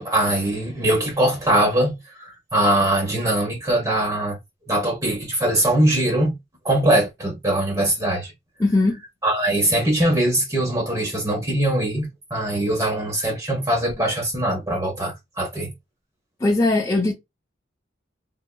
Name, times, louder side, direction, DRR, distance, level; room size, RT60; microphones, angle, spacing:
voice 1, 0.0-4.4 4.7-6.3 6.6-8.3 9.2-15.7, right 1 dB, 15° right, 1.2 m, -22 dB
voice 2, 8.6-9.0 16.4-17.1, left 2 dB, 15° left, 0.6 m, -19 dB
3.7 x 2.9 x 2.2 m
head